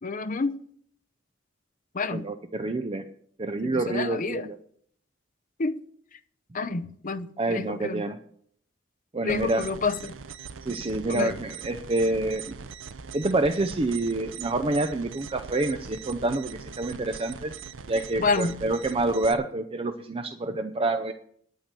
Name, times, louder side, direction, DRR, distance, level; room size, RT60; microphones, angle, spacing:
voice 1, 0.0-0.6 1.9-2.3 3.6-4.5 5.6-5.8 6.5-8.1 9.2-10.2 11.1-11.4 18.2-18.6, left 4 dB, 40° left, 0.7 m, -29 dB
voice 2, 2.1-3.0 3.4-4.6 7.4-8.2 9.1-9.6 10.6-12.6 13.1-17.5 17.9-21.1, right 2 dB, 30° right, 0.6 m, -27 dB
sound 1, 9.3-19.3, right 6 dB, 70° right, 0.6 m, -41 dB
9.8 x 9.1 x 6.7 m
head